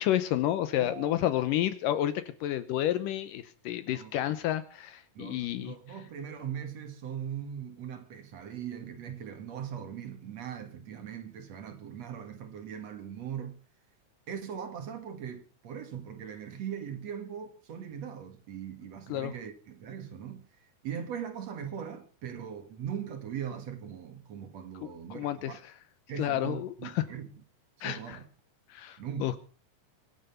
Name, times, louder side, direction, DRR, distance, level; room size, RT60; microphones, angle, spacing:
voice 1, 0.0-6.0 19.1-19.3 24.8-25.7 26.2-27.0 27.8-28.2 28.7-29.4, left 12 dB, 80° left, 2.5 m, -30 dB
voice 2, 0.8-1.3 3.9-4.3 5.1-13.6 14.3-25.6 26.1-27.3 27.8-28.3 29.0-29.4, right 8 dB, 55° right, 2.6 m, -40 dB
24.5 x 9.0 x 5.7 m
omnidirectional pair, 3.9 m